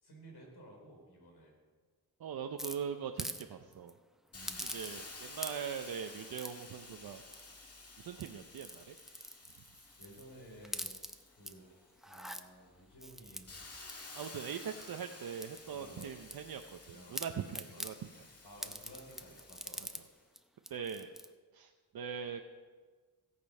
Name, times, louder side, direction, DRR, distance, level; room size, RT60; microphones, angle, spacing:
voice 1, 0.0-1.5 4.3-4.8 10.0-10.9 11.3-13.6 15.7-16.2 16.9-17.2 17.7-18.0 18.4-20.0, equal, 80° left, 0 dB, 4.0 m, -55 dB
voice 2, 2.2-4.0 4.6-7.2 8.0-9.0 14.1-18.1 20.7-21.1 21.5-22.4, right 7 dB, 70° right, 5 dB, 0.7 m, -41 dB
sound 1, 2.6-3.4 3.7-3.9 4.5-5.1 5.4-5.8 6.4-6.7 7.3-7.7 8.1-10.3 10.6-11.5 12.0-12.4 13.0-15.0 15.4-16.8 17.1-17.9 18.6-20.0 20.4-20.5 20.6-21.3, equal, ahead, 0.6 m, -45 dB
Hiss, 4.3-11.9 12.4-20.2, left 3 dB, 40° left, 1.6 m, -52 dB
17.0 x 6.8 x 5.4 m, 1.4 s
cardioid pair, 80°, 38 cm